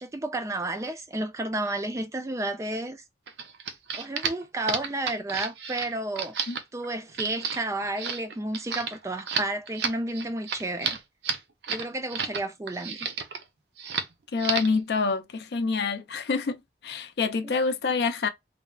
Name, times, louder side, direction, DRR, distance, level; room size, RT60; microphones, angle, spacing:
voice 1, 0.0-3.0 3.9-6.4 6.7-11.0 11.7-13.1 17.4-17.5, right 2 dB, 15° right, 0.3 m, -31 dB
sound 1, 3.3-12.4 12.7-13.4 13.8-14.1 14.4-14.8, right 6 dB, 75° right, 0.5 m, -32 dB
voice 2, 14.3-18.3, left 4 dB, 70° left, 0.4 m, -27 dB
3.2 x 2.0 x 2.3 m
head